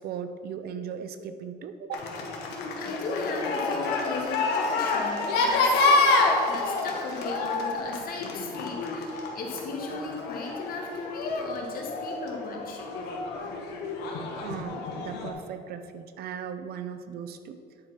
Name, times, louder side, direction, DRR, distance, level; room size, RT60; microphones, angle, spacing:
voice 1, 0.0-2.1 14.4-17.6, right 7 dB, 65° right, 10 dB, 0.7 m, -37 dB
sound 1, 1.9-15.3, left 3 dB, 85° left, 1.3 m, -28 dB
voice 2, 2.8-6.2 6.5-12.8 14.0-14.1, left 3 dB, 60° left, 0 dB, 1.8 m, -36 dB
10.0 x 4.5 x 5.8 m, 2.4 s
cardioid pair, 110°, 17 cm